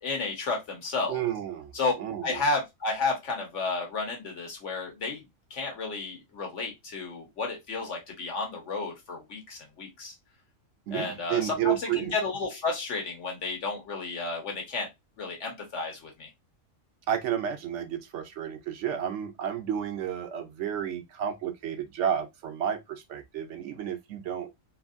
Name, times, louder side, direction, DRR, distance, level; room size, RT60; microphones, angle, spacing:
voice 1, 0.0-1.2 1.7-1.9 2.2-5.2 5.5-10.1 10.9-14.9 15.2-16.3, left 3 dB, 65° left, 1.4 m, -32 dB
voice 2, 1.1-1.7 2.0-2.4 10.9-12.1 17.1-24.5, right 10 dB, 70° right, 0.9 m, -31 dB
3.1 x 2.6 x 2.5 m
omnidirectional pair, 1.3 m